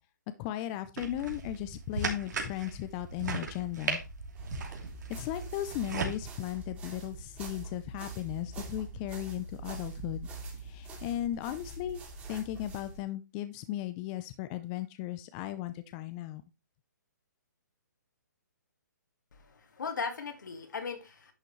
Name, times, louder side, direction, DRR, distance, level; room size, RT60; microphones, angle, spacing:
voice 1, 0.4-4.0 5.1-10.3 10.5-12.0 12.3-16.4, left 13 dB, 25° left, 0.6 m, -36 dB
sound 1, 1.0-6.2, right 4 dB, 70° right, 2.9 m, -37 dB
sound 2, 4.4-13.0, right 3 dB, 15° right, 2.8 m, -44 dB
voice 2, 19.4-21.3, left 5 dB, 75° left, 2.4 m, -38 dB
10.5 x 6.7 x 3.2 m
hypercardioid pair, 145°, 10 cm